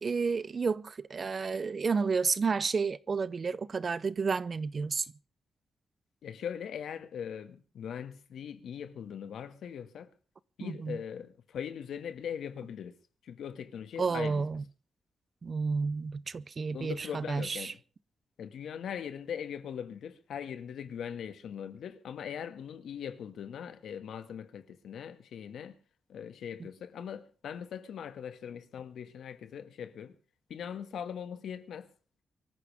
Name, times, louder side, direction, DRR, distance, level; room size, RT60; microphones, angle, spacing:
voice 1, 0.0-5.0 10.6-11.0 14.0-14.6 15.4-17.7, right 5 dB, 35° right, 0.7 m, -31 dB
voice 2, 6.2-10.1 10.6-13.0 13.2-14.5 16.7-17.8 18.4-25.8 26.1-30.2 30.5-31.9, left 8 dB, 85° left, 2.0 m, -40 dB
24.5 x 14.0 x 3.6 m
wide cardioid pair, 145°, 0 cm